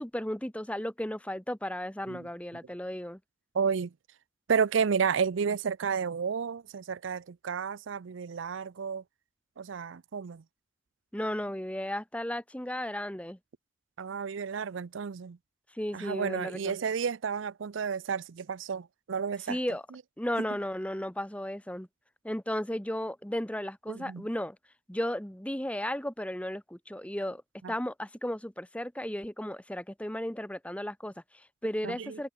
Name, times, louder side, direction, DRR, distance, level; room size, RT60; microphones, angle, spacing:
voice 1, 0.0-3.2 11.1-13.4 15.7-16.8 19.5-19.8 20.2-21.9 22.2-24.6 24.9-27.4 27.7-32.3, left 1 dB, 5° left, 1.4 m, -34 dB
voice 2, 3.5-3.9 4.5-9.0 9.6-10.4 14.0-15.4 15.9-19.6 23.9-24.2 27.6-27.7 31.8-32.2, right 6 dB, 80° right, 0.5 m, -31 dB
head